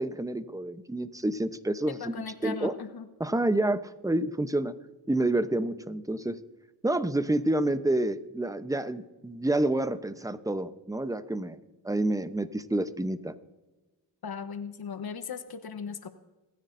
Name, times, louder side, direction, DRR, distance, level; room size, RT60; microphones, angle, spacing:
voice 1, 0.0-2.2 2.4-2.7 3.2-4.7 5.1-6.4 6.8-11.6 11.8-13.3, right 1 dB, 10° right, 12 dB, 0.8 m, -28 dB
voice 2, 1.9-3.1 14.2-16.1, left 6 dB, 55° left, 10 dB, 1.2 m, -38 dB
26.0 x 9.9 x 2.7 m, 1.2 s
cardioid pair, 50°, 44 cm